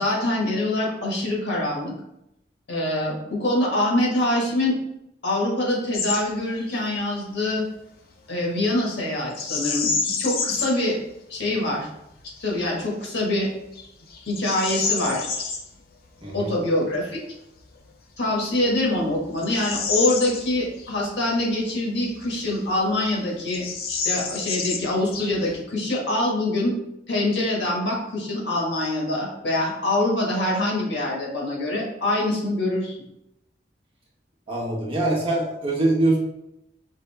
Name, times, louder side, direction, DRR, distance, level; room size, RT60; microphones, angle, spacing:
voice 1, 0.0-1.9 2.7-4.8 5.2-7.6 8.3-11.0 11.3-11.9 12.4-13.5 14.2-15.4 16.3-17.2 18.2-26.8 27.1-32.9, left 1 dB, 75° left, -3 dB, 1.4 m, -24 dB
Bird vocalization bird call bird song, 5.9-6.2 6.5-6.8 9.3-10.8 11.4-11.5 12.1-12.5 13.1-13.2 13.7-15.6 17.7-17.8 18.5-20.9 21.3-21.4 22.1-22.9 23.1-23.2 23.5-25.6, left 5 dB, 50° left, 0.6 m, -29 dB
voice 2, 16.2-16.5 34.5-36.2, right 2 dB, 30° right, -4 dB, 1.1 m, -23 dB
5.2 x 2.7 x 3.4 m, 0.84 s
head